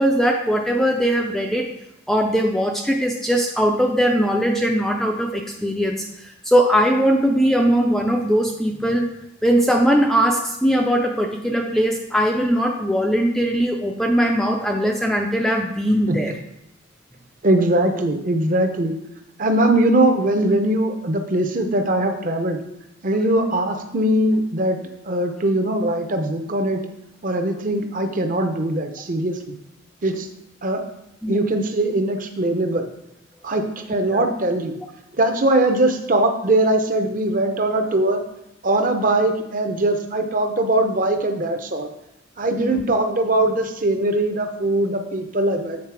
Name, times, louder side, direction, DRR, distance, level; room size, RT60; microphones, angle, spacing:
voice 1, 0.0-1.7 2.1-9.1 9.4-16.3 31.2-31.5 34.1-34.3 42.6-42.8, equal, ahead, 1 dB, 0.3 m, -20 dB
voice 2, 17.4-18.9 19.4-22.6 23.0-24.8 25.0-26.8 27.2-29.6 30.0-30.3 30.6-30.8 31.3-32.9 33.4-34.7 35.2-38.2 38.6-41.9 42.4-45.8, right 1 dB, 40° right, 5 dB, 0.6 m, -21 dB
7.4 x 4.0 x 4.7 m, 0.84 s
head